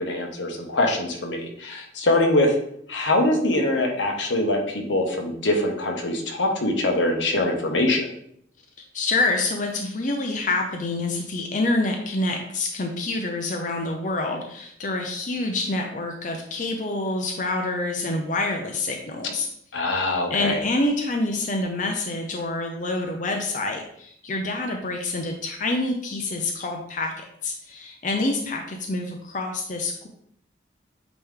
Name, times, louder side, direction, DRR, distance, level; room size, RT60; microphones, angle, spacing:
voice 1, 0.1-2.5 2.9-8.1 19.7-20.6, left 1 dB, 80° left, 2 dB, 1.2 m, -23 dB
voice 2, 8.9-19.5 20.3-27.1 27.4-30.1, left 2 dB, 40° left, 2 dB, 0.6 m, -27 dB
8.6 x 3.1 x 3.6 m, 0.69 s
head